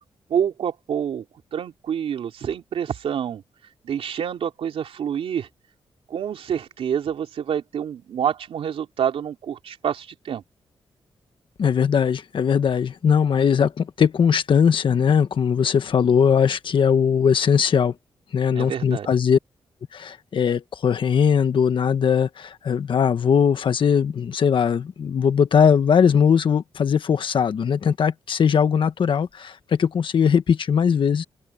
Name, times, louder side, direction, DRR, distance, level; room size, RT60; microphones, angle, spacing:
voice 1, 0.3-1.2 1.5-3.4 3.8-5.5 6.1-10.4 18.5-19.1, right 8 dB, 80° right, 3.2 m, -27 dB
voice 2, 11.6-17.9 18.3-19.4 19.9-31.2, left 7 dB, 60° left, 1.4 m, -20 dB
open air
wide cardioid pair, 120°, 10 cm